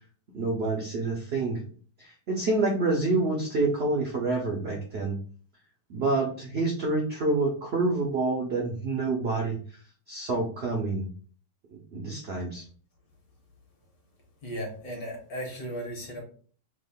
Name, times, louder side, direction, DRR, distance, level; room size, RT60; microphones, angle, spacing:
voice 1, 0.3-1.6 2.0-5.2 5.9-9.8 10.1-11.1 11.9-12.6, right 3 dB, 75° right, 0 dB, 0.5 m, -27 dB
voice 2, 14.4-16.2, equal, 60° left, 0 dB, 1.5 m, -36 dB
3.5 x 2.2 x 3.4 m, 0.44 s
omnidirectional pair, 1.9 m